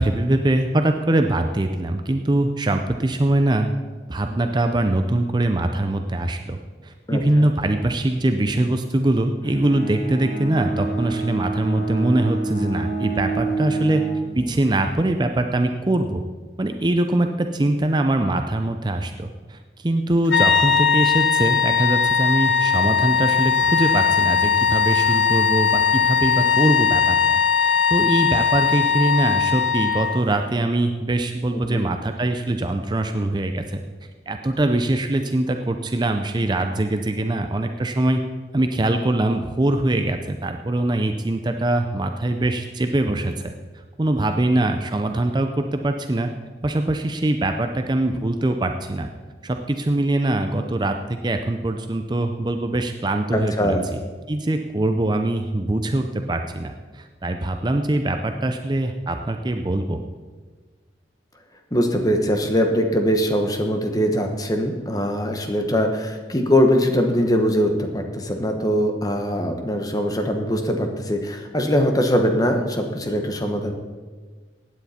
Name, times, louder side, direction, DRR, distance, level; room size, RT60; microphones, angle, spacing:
voice 1, 0.0-3.7 4.1-14.0 14.3-16.2 16.6-33.8 34.3-38.2 38.5-43.5 44.0-46.3 46.6-49.1 49.4-54.0 54.3-60.0, right 1 dB, 25° right, 6 dB, 0.5 m, -23 dB
voice 2, 7.1-7.5 31.7-31.8 53.3-53.8 61.7-73.7, equal, 20° left, 5 dB, 1.1 m, -22 dB
Bowed string instrument, 9.4-14.3, right 4 dB, 50° left, 3.6 m, -27 dB
sound 1, 20.3-30.3, left 6 dB, 70° left, 0.7 m, -19 dB
16.0 x 9.4 x 4.3 m, 1.4 s
head